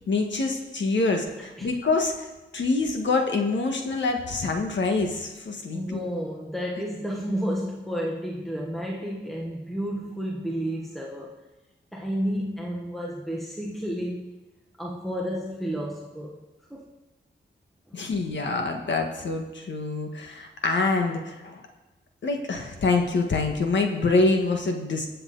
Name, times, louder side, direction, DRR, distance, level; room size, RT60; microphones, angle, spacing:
voice 1, 0.1-6.0 17.9-21.7 22.2-25.1, left 3 dB, 70° left, 1.6 m, -26 dB
voice 2, 1.1-1.8 5.7-11.4 11.9-14.3 14.8-16.4 16.7-16.9 17.9-18.0, equal, ahead, 1.1 m, -31 dB
21.5 x 7.7 x 4.0 m
wide cardioid pair, 155°, 20 cm